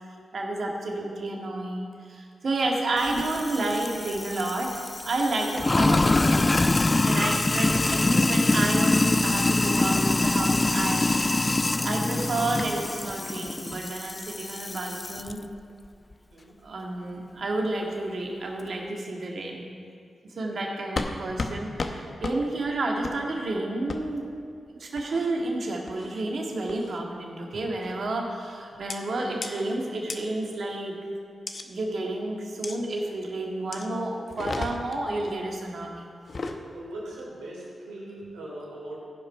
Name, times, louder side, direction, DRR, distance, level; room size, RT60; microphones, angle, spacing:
voice 1, 0.3-4.7 5.1-6.5 7.0-11.1 11.8-15.4 16.6-19.6 20.3-24.3 24.7-31.0 31.7-36.1, right 2 dB, 65° right, 0 dB, 1.8 m, -30 dB
Sink (filling or washing), 3.0-15.3, left 2 dB, 35° left, 0.4 m, -24 dB
voice 2, 16.3-16.6 36.7-39.0, right 1 dB, 90° right, -5 dB, 3.0 m, -40 dB
sound 1, 21.0-21.1 21.4-21.5 21.8-21.9 22.2-22.4 23.0-23.2 23.9-24.0 25.0-25.3 25.9-26.2 26.7-27.0 27.8-28.1 28.9-29.0 29.4-29.5 30.1-30.2 31.5-31.6 32.6-32.8 33.7-33.9 34.3-35.0 36.2-36.6, left 3 dB, 55° left, 0.8 m, -33 dB
15.5 x 5.4 x 5.6 m, 2.4 s
supercardioid pair, 40°, 0 cm